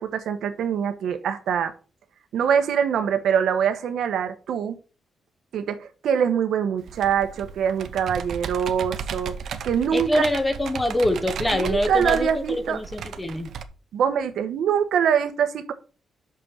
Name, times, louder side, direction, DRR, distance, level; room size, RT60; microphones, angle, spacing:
voice 1, 0.0-1.7 2.3-4.8 5.5-9.4 9.6-10.3 11.5-12.8 13.9-15.7, right 8 dB, 85° right, 1.1 m, -24 dB
Computer keyboard, 6.9-13.6, right 7 dB, 65° right, 0.8 m, -35 dB
voice 2, 9.9-12.3 12.7-13.5, left 1 dB, 15° left, 1.0 m, -24 dB
6.2 x 5.5 x 6.9 m
wide cardioid pair, 150°, 0 cm